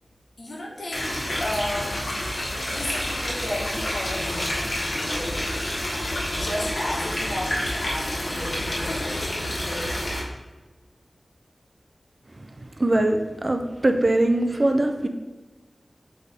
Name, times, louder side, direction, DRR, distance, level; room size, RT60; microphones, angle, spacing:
voice 1, 0.4-2.1 2.7-5.4 6.3-9.9, left 1 dB, 85° left, -4 dB, 1.5 m, -34 dB
sound 1, 0.9-10.2, left 1 dB, 70° left, 1.5 m, -28 dB
voice 2, 12.8-15.1, right 1 dB, 40° right, 5 dB, 0.6 m, -21 dB
7.7 x 3.5 x 3.6 m, 1.2 s
wide cardioid pair, 70°, 0 cm